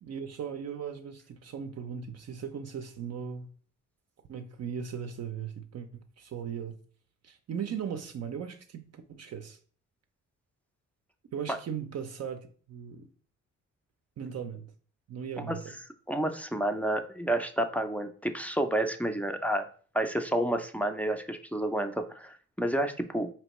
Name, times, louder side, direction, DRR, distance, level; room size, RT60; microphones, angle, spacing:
voice 1, 0.0-3.5 4.3-6.8 7.2-9.6 11.3-13.1 14.2-14.7 15.1-15.7, right 7 dB, 55° right, 0.5 m, -38 dB
voice 2, 16.1-19.7 19.9-23.3, right 1 dB, 5° left, 0.4 m, -30 dB
4.3 x 3.0 x 3.0 m
cardioid pair, 85°, 31 cm